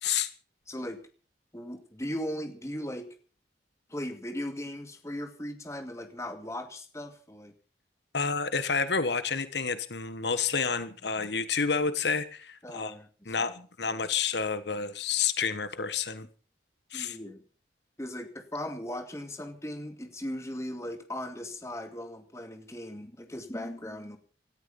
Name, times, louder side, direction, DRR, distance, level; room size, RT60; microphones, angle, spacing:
voice 1, 0.7-1.0 1.5-3.1 3.9-7.5 12.6-13.1 16.9-17.4 18.0-24.2, left 1 dB, 15° left, 6 dB, 2.3 m, -38 dB
voice 2, 8.1-12.9 13.2-16.3 16.9-17.2, left 5 dB, 70° left, 12 dB, 1.4 m, -29 dB
18.0 x 14.0 x 5.5 m, 0.39 s
head